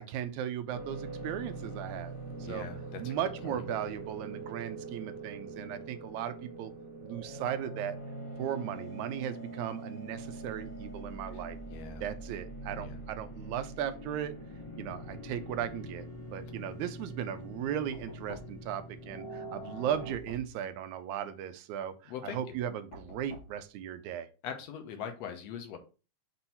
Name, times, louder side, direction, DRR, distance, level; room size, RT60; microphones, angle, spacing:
voice 1, 0.0-2.1 2.4-2.7 3.0-6.7 7.0-8.0 8.4-11.6 12.0-14.4 14.8-24.3, right 10 dB, 80° right, 10 dB, 2.0 m, -37 dB
sound 1, 0.7-20.1, right 2 dB, 45° left, 0.3 m, -43 dB
voice 2, 2.4-3.1 3.5-3.6 11.7-12.0 12.8-13.0 22.1-22.4 24.4-25.8, left 8 dB, 70° left, 6 dB, 2.0 m, -41 dB
Knock, 17.9-18.8 19.9-20.6 22.9-23.6, left 1 dB, 85° left, 3.2 m, -48 dB
6.1 x 2.9 x 5.5 m, 0.33 s
omnidirectional pair, 3.4 m